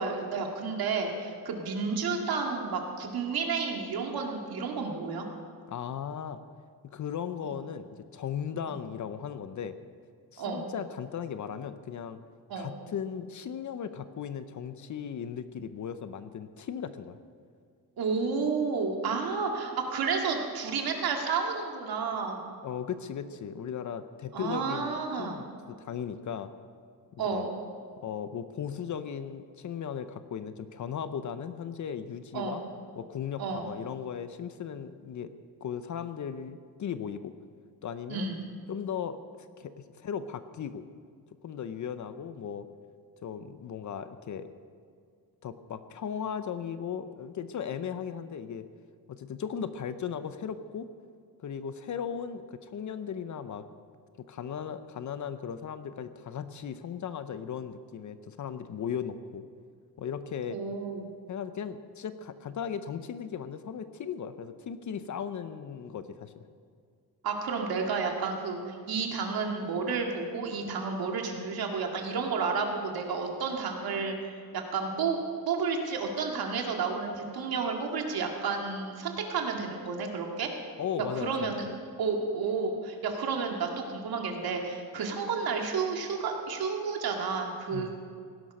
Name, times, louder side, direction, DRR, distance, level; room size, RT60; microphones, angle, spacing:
voice 1, 0.0-5.3 7.4-7.5 8.7-8.8 10.4-10.7 12.5-12.7 18.0-22.5 24.3-25.4 27.2-27.6 32.3-32.6 33.4-33.7 38.1-38.5 60.5-61.1 67.2-75.2 75.4-80.5 81.0-81.7 82.0-87.9, right 5 dB, 70° right, 2 dB, 2.2 m, -31 dB
voice 2, 5.7-6.4 6.8-9.8 10.3-12.2 12.5-17.2 22.6-26.5 27.1-27.5 28.0-32.6 33.0-35.3 35.6-37.3 37.8-38.3 38.7-39.2 39.6-40.8 41.4-42.7 43.2-44.5 45.4-48.7 49.1-50.9 51.4-53.6 54.3-59.4 60.0-60.6 61.3-66.5 80.8-81.5 87.7-88.0, left 8 dB, 50° left, 11 dB, 0.7 m, -37 dB
17.5 x 11.5 x 5.4 m, 2.1 s
wide cardioid pair, 160°, 38 cm